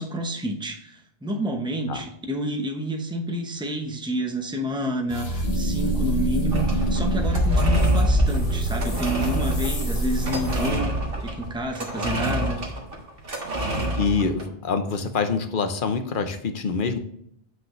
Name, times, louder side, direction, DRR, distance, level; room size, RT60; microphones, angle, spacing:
voice 1, 0.0-10.9 11.2-12.6, right 1 dB, 5° right, 3 dB, 0.9 m, -29 dB
sound 1, 5.1-10.7, equal, 85° left, 1.9 m, -24 dB
sound 2, 6.5-14.5, right 1 dB, 65° right, 1.7 m, -29 dB
voice 2, 14.0-17.0, left 5 dB, 55° left, 8 dB, 1.0 m, -25 dB
7.9 x 6.1 x 3.1 m, 0.72 s
omnidirectional pair, 1.0 m